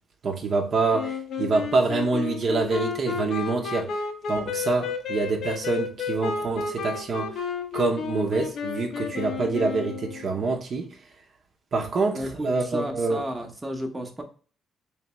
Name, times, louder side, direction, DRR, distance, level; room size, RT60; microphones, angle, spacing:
voice 1, 0.2-3.9 4.3-7.3 7.7-10.9 11.7-13.2, right 3 dB, 50° right, 0.8 m, -26 dB
Wind instrument woodwind instrument, 0.9-10.4, left 5 dB, 65° left, 0.7 m, -32 dB
voice 2, 12.1-14.2, right 1 dB, 15° right, 1.0 m, -33 dB
3.4 x 3.3 x 3.1 m
cardioid pair, 90°, 0 cm